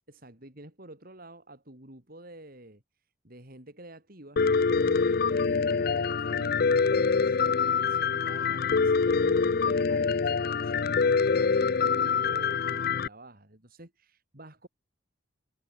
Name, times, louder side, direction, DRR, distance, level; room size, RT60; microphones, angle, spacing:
voice 1, 0.1-2.8 3.2-4.4 4.9-14.7, right 1 dB, 50° right, 4.3 m, -49 dB
Piano, 4.4-13.1, left 5 dB, 50° left, 0.5 m, -25 dB
head